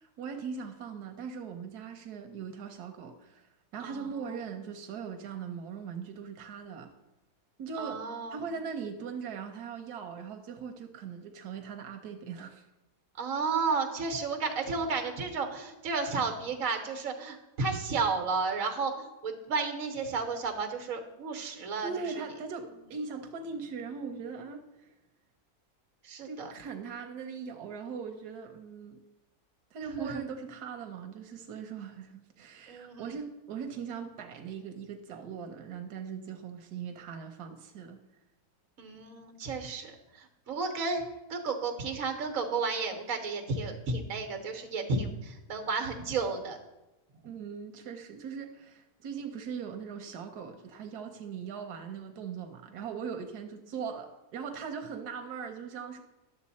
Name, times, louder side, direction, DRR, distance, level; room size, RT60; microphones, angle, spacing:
voice 1, 0.0-6.9 7.6-8.0 8.3-12.7 21.8-24.9 26.2-29.0 29.7-38.0 47.2-56.0, right 6 dB, 90° right, 5 dB, 1.3 m, -40 dB
voice 2, 3.8-4.4 7.8-8.4 13.2-21.9 26.0-26.5 30.0-30.2 32.7-33.1 38.8-41.0 41.3-46.6, right 4 dB, 60° right, 4 dB, 1.6 m, -32 dB
11.0 x 6.9 x 4.2 m, 1.0 s
omnidirectional pair, 1.6 m